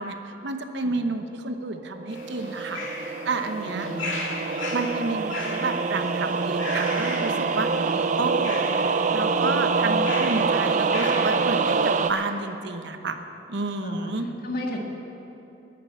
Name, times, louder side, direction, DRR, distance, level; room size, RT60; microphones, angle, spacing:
voice 1, 0.0-3.9 4.7-8.6 9.1-13.2 13.5-14.3, right 3 dB, 65° right, 7 dB, 0.9 m, -30 dB
sound 1, 1.9-12.1, right 4 dB, 40° right, 0.4 m, -25 dB
sound 2, 2.1-12.2, left 2 dB, 80° left, 2.2 m, -37 dB
voice 2, 3.6-4.1 13.8-14.1 14.4-14.8, left 1 dB, 55° left, 1 dB, 1.7 m, -33 dB
10.5 x 9.4 x 9.4 m, 2.9 s
head